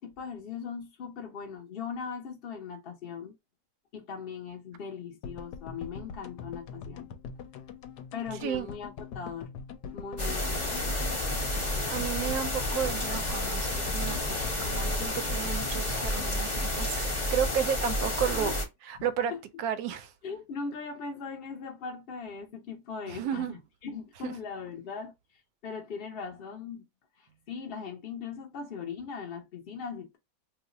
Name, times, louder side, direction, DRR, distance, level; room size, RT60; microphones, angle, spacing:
voice 1, 0.0-3.3 3.9-7.1 8.1-9.5 9.9-10.9 18.3-18.6 19.3-19.4 20.2-25.1 25.6-26.9 27.2-30.2, left 5 dB, 60° left, 0.6 m, -39 dB
sound 1, 5.2-17.5 17.7-17.8 18.0-18.1, left 6 dB, 75° left, 1.1 m, -43 dB
sound 2, 10.2-18.7, left 1 dB, 15° left, 0.6 m, -30 dB
voice 2, 11.9-18.6 18.9-19.3 19.6-20.1 23.1-23.5 24.2-24.3, right 8 dB, 70° right, 1.0 m, -32 dB
3.1 x 2.1 x 3.7 m
omnidirectional pair, 1.9 m